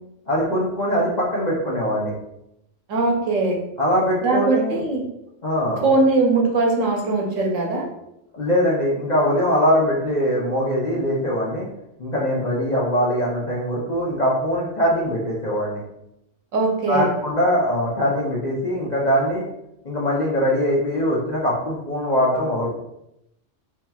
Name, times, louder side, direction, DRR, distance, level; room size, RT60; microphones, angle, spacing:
voice 1, 0.3-2.1 3.8-4.8 5.4-5.8 8.3-11.7 12.0-15.8 16.9-19.4 19.8-22.7, equal, 45° left, -5 dB, 0.7 m, -22 dB
voice 2, 2.9-3.6 4.2-5.0 5.8-7.9 16.5-17.1, right 3 dB, 85° right, 0 dB, 1.2 m, -20 dB
4.4 x 2.9 x 2.3 m, 0.82 s
omnidirectional pair, 1.3 m